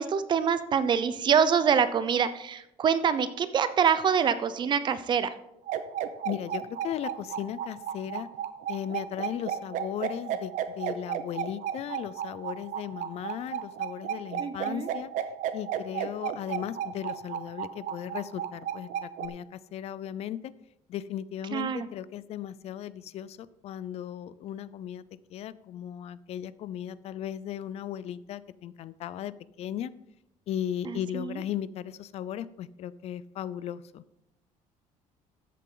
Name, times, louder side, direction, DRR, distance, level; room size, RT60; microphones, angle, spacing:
voice 1, 0.0-5.3 14.4-14.9 21.5-21.9 30.8-31.4, right 7 dB, 35° right, 13 dB, 0.7 m, -25 dB
sound 1, 5.7-19.3, right 10 dB, 65° right, 0.9 m, -33 dB
voice 2, 6.2-8.3 8.7-15.1 15.5-20.4 20.9-25.0 25.3-29.3 29.6-29.9 30.5-34.0, left 10 dB, 50° left, 17 dB, 0.5 m, -36 dB
13.5 x 8.3 x 3.9 m, 0.84 s
cardioid pair, 160°, 14 cm